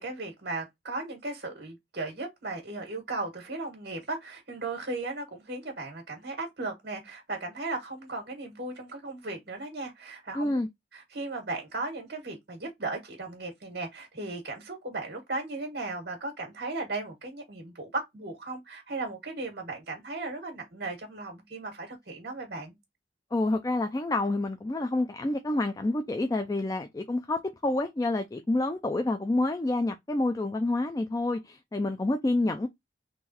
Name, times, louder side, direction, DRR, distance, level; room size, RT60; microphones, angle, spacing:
voice 1, 0.0-10.6 10.9-22.7, right 2 dB, 60° right, 1.7 m, -36 dB
voice 2, 10.3-10.7 23.3-32.7, left 2 dB, 20° left, 0.3 m, -28 dB
3.8 x 3.0 x 2.8 m
head